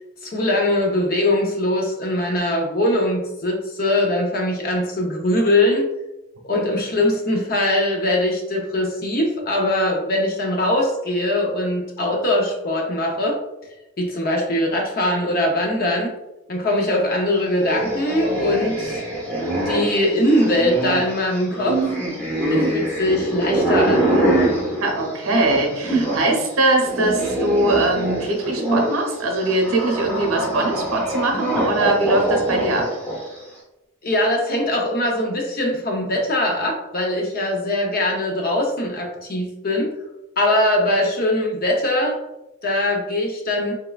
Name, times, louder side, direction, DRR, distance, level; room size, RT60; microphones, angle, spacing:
voice 1, 0.2-5.9 6.4-13.4 14.0-16.1 16.5-19.0 19.6-21.8 22.5-24.2 34.0-39.9 40.4-42.2 42.6-43.8, left 1 dB, 45° left, 1 dB, 0.6 m, -21 dB
sound 1, 17.5-26.3 26.6-33.4, right 1 dB, 10° left, 0.8 m, -24 dB
voice 2, 24.8-33.0, right 2 dB, 80° right, 1 dB, 0.7 m, -21 dB
3.5 x 3.1 x 2.3 m, 0.98 s
head